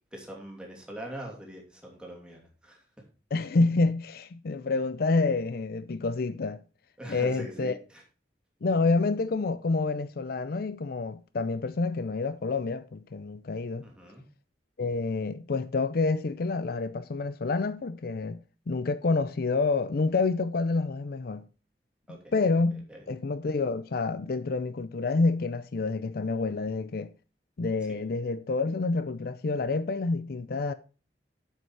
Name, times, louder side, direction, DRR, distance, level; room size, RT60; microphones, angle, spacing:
voice 1, 0.1-3.1 7.0-8.0 13.8-14.2 22.1-22.3 22.7-23.1 27.9-28.0, right 1 dB, 5° right, 2.8 m, -43 dB
voice 2, 3.3-6.6 7.1-7.7 8.6-13.8 14.8-18.4 18.7-21.5 22.3-27.1 27.6-30.7, left 3 dB, 60° left, 0.5 m, -28 dB
8.0 x 7.8 x 4.6 m
head